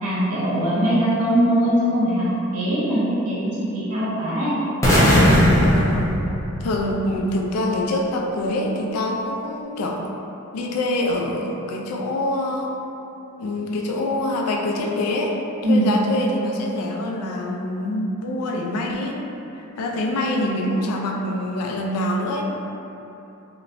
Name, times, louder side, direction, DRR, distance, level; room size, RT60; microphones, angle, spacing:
voice 1, 0.0-4.5 15.6-15.9, right 1 dB, 85° right, -9 dB, 0.7 m, -21 dB
sound 1, 4.8-6.9, equal, 15° left, 0.5 m, -17 dB
voice 2, 5.6-6.1 6.6-10.1 10.5-12.7 13.4-15.4 15.7-19.2 19.6-22.4, left 1 dB, 90° left, 0 dB, 0.3 m, -25 dB
2.8 x 2.0 x 2.6 m, 3.0 s
head